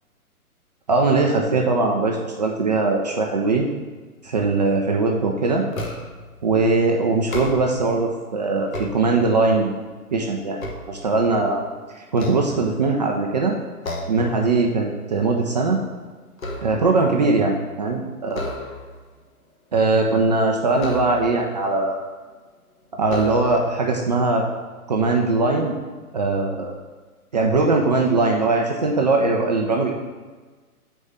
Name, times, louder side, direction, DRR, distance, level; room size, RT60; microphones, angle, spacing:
voice 1, 0.9-3.7 4.2-5.6 6.4-9.7 10.1-10.6 10.9-11.6 12.1-13.5 14.1-15.8 16.6-18.5 19.7-22.0 23.0-24.5 24.9-25.7 26.1-26.7 27.3-29.9, right 3 dB, 30° right, 0 dB, 0.5 m, -20 dB
sound 1, 5.7-6.3 7.2-7.9 8.5-9.6 10.1-11.6 12.1-13.1 13.8-14.3 14.7-15.0 15.3-17.1 18.3-19.1 20.8-21.5 22.3-22.4 23.0-23.8, left 1 dB, 60° left, 1.3 m, -33 dB
6.3 x 4.4 x 6.4 m, 1.4 s
figure-of-eight pair, 125°, 45 cm